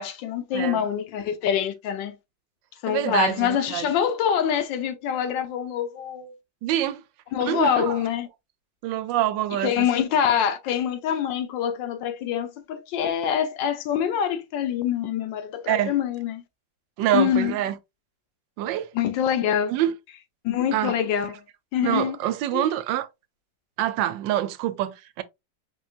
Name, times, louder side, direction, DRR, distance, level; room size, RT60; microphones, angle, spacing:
voice 1, 0.0-2.2 2.8-6.3 7.3-8.3 9.6-16.4 17.1-17.5 18.9-19.7 20.4-21.3 21.7-22.2 22.5-22.6, left 9 dB, 80° left, 1.4 m, -25 dB
voice 2, 2.9-3.9 6.6-7.0 7.4-8.0 8.8-9.9 15.7-15.9 17.0-17.8 18.6-18.9 19.7-19.9 20.7-21.0 21.8-23.1 23.8-25.2, right 12 dB, 85° right, 1.3 m, -26 dB
4.8 x 3.7 x 2.4 m
omnidirectional pair, 2.0 m